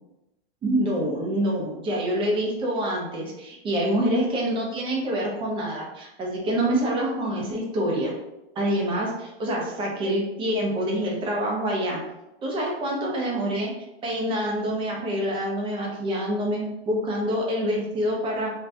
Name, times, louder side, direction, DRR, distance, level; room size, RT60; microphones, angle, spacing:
voice 1, 0.6-8.1 8.5-12.0 12.4-13.7 14.0-18.5, equal, 15° right, -2 dB, 0.7 m, -26 dB
3.4 x 2.4 x 2.7 m, 0.93 s
hypercardioid pair, 130°, 32 cm